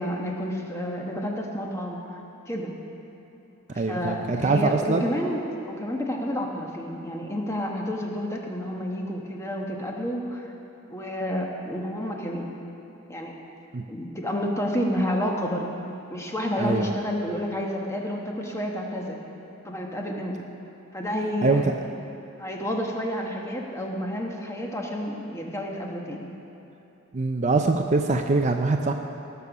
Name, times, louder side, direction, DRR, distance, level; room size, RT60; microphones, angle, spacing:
voice 1, 0.0-2.2 2.5-2.7 3.7-10.5 10.9-12.5 13.1-13.3 13.9-15.7 16.1-19.2 19.6-20.4 20.9-21.6 22.4-26.3, equal, 15° left, 0 dB, 1.2 m, -30 dB
voice 2, 3.7-5.1 13.7-13.8 16.6-16.9 21.4-21.7 27.1-28.9, right 3 dB, 35° right, 4 dB, 0.5 m, -23 dB
19.0 x 6.9 x 6.1 m, 3.0 s
head